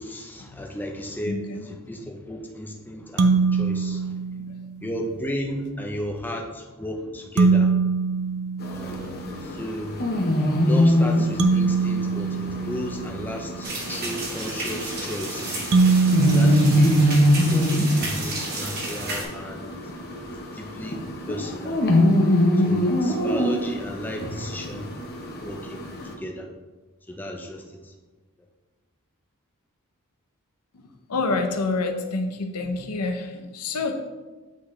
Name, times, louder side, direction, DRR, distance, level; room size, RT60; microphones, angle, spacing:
voice 1, 0.0-4.1 4.8-7.7 8.7-10.2 10.6-15.6 16.2-17.1 17.4-19.7 20.3-21.8 22.5-25.0 25.4-25.8 26.2-26.5 27.1-27.9, equal, 10° left, 1 dB, 0.5 m, -34 dB
voice 2, 1.2-1.6 2.0-2.1 3.4-3.6 4.4-4.6 30.7-34.0, left 3 dB, 85° left, 5 dB, 0.7 m, -28 dB
sound 1, 3.2-4.9 7.4-9.4 11.4-13.5 15.7-17.8, right 4 dB, 65° right, 0.5 m, -23 dB
sound 2, 8.6-26.1, equal, 45° left, 0.9 m, -24 dB
sound 3, 13.6-19.2, right 2 dB, 45° right, 1.6 m, -32 dB
8.3 x 3.9 x 3.2 m, 1.2 s
head